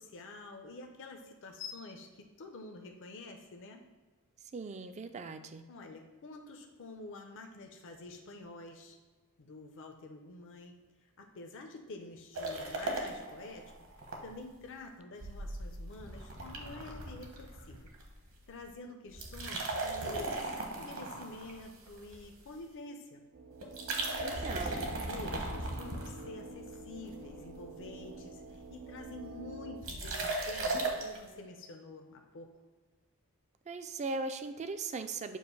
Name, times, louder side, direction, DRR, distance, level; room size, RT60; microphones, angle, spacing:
voice 1, 0.0-3.8 5.7-9.0 9.4-10.8 11.2-13.7 14.2-17.9 18.5-20.4 20.8-23.2 24.2-32.5, left 2 dB, 60° left, 3 dB, 0.6 m, -48 dB
voice 2, 4.5-5.6 24.2-24.8 33.7-35.4, right 3 dB, 30° right, 9 dB, 0.4 m, -39 dB
sound 1, 12.4-14.2 14.5-14.6 15.2-18.1 18.4-18.7 19.1-22.4 23.6-26.6 27.1-27.6 27.9-28.0 28.2-28.3 28.4-28.8 29.8-31.2, right 2 dB, 65° right, 1.1 m, -37 dB
sound 2, 23.3-29.8, right 2 dB, 90° right, 0.6 m, -48 dB
7.3 x 2.6 x 5.3 m, 1.4 s
head